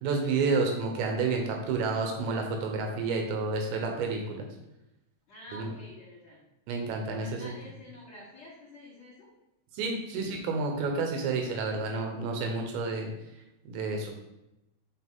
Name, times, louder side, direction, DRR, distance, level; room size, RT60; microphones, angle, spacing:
voice 1, 0.0-4.5 5.5-5.7 6.7-7.6 9.7-13.1 13.6-14.1, right 4 dB, 75° right, 2 dB, 2.8 m, -30 dB
voice 2, 5.3-6.5 7.1-9.3, left 1 dB, 45° left, -10 dB, 3.3 m, -48 dB
8.4 x 4.2 x 3.6 m, 0.90 s
omnidirectional pair, 6.0 m